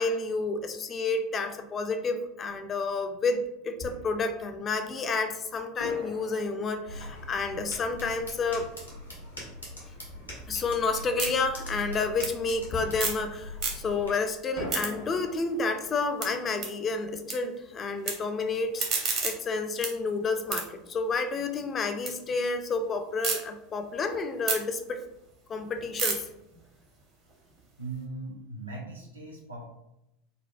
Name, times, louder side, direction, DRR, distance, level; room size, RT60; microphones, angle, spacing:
voice 1, 0.0-8.7 10.5-25.0 25.5-26.3, left 4 dB, 30° left, 7 dB, 0.3 m, -30 dB
Fireworks, 2.5-2.6 3.8-4.9 5.8-9.2 12.7-14.1 14.5-19.1 19.3-19.4 20.0-20.2, left 1 dB, 65° left, 0.7 m, -45 dB
sound 1, 6.9-14.1, left 1 dB, 85° left, 1.0 m, -42 dB
sound 2, 10.3-13.3 13.5-14.1 14.5-17.3 17.6-18.1 18.5-22.1 22.5-23.4 23.8-28.0, right 4 dB, 45° right, 0.8 m, -35 dB
voice 2, 27.8-29.7, right 3 dB, 85° right, -1 dB, 0.6 m, -39 dB
4.0 x 2.1 x 2.4 m, 0.87 s
figure-of-eight pair, 75°, 0 cm